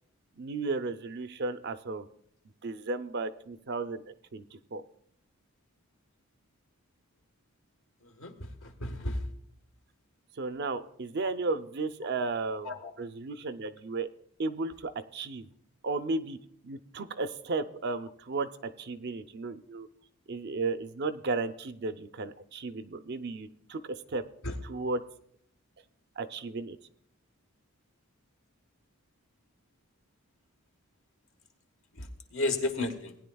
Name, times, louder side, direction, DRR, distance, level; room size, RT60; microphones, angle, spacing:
voice 1, 0.4-2.1 2.6-4.8 10.4-12.7 13.0-14.1 14.4-15.5 15.8-16.4 16.6-19.9 20.3-24.2 24.7-25.0 26.2-26.8, right 3 dB, 50° right, 10 dB, 0.5 m, -34 dB
voice 2, 8.0-9.2 12.6-12.9 24.4-24.6 31.9-33.2, left 2 dB, 60° left, 4 dB, 1.4 m, -33 dB
19.0 x 10.0 x 2.3 m, 0.68 s
head